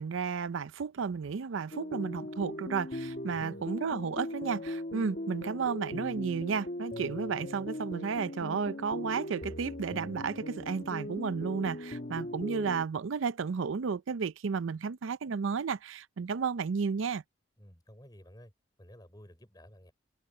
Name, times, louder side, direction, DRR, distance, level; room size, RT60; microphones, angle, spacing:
voice 1, 0.0-17.2, right 5 dB, 80° right, 0.5 m, -33 dB
sound 1, 1.7-12.8, left 1 dB, 45° left, 1.3 m, -39 dB
voice 2, 3.3-3.6 17.6-18.5 18.8-19.9, equal, 20° left, 4.8 m, -53 dB
open air
head